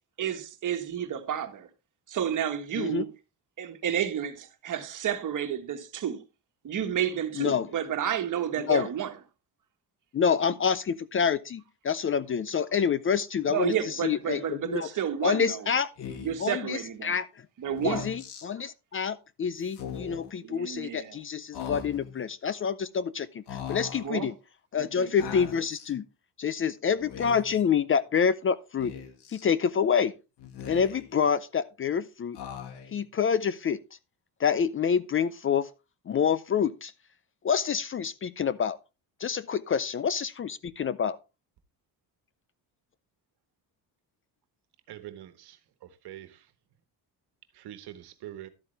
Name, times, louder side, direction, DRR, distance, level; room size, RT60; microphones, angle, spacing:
voice 1, 0.2-1.7 2.1-3.1 3.6-6.2 6.6-9.1 13.5-15.7 16.2-17.2 17.6-18.1 20.4-21.2 24.0-24.3 24.7-25.1, right 9 dB, 50° right, 1.6 m, -31 dB
voice 2, 7.4-7.7 8.6-8.9 10.1-13.7 14.0-14.9 15.2-15.9 16.4-17.3 17.8-23.4 23.7-24.3 24.7-26.0 26.4-28.9 29.3-30.1 30.7-32.4 32.9-33.8 34.4-35.7 36.1-36.9 37.4-38.8 39.2-41.2, left 7 dB, 35° left, 0.5 m, -27 dB
Speech, 16.0-16.5 17.7-18.5 19.7-20.3 21.5-22.2 23.5-24.1 25.2-25.9 27.0-27.6 28.8-29.5 30.4-31.2 32.3-33.0, left 8 dB, 80° left, 1.9 m, -40 dB
voice 3, 44.9-46.5 47.5-48.5, right 12 dB, 70° right, 1.4 m, -45 dB
12.0 x 8.3 x 3.3 m
cardioid pair, 130°, 40 cm